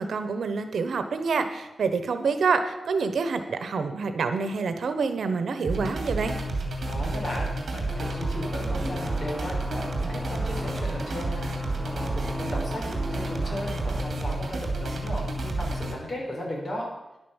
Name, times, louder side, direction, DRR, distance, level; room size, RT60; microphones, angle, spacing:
voice 1, 0.0-6.3, right 4 dB, 85° right, 9 dB, 1.1 m, -27 dB
sound 1, 5.6-15.9, right 2 dB, 55° right, 2.6 m, -30 dB
voice 2, 6.9-12.9 13.1-16.9, equal, 40° left, -2 dB, 4.2 m, -36 dB
sound 2, 7.9-14.0, right 1 dB, 5° right, 0.8 m, -38 dB
10.5 x 9.5 x 7.2 m, 1.0 s
wide cardioid pair, 165°, 0 cm